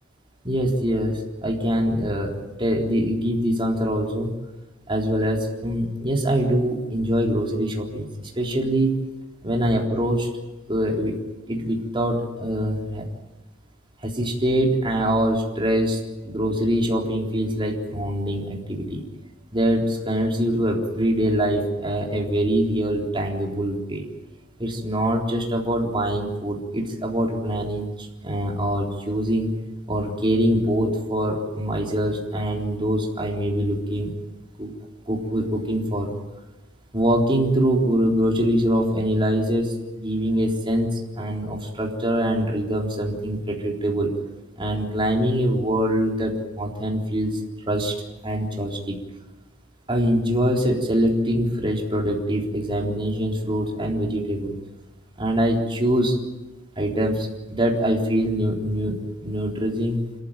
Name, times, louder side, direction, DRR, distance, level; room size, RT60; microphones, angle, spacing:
voice 1, 0.4-4.3 4.9-9.0 9.4-10.3 10.7-11.2 11.5-13.0 14.0-19.0 19.5-24.1 24.6-29.5 29.9-34.1 34.6-34.7 35.1-36.1 36.9-44.1 44.6-47.4 47.7-49.0 49.9-54.5 55.2-56.2 56.8-58.9 59.2-60.0, equal, 25° right, -1 dB, 3.8 m, -24 dB
27.0 x 14.5 x 9.1 m, 1.1 s
head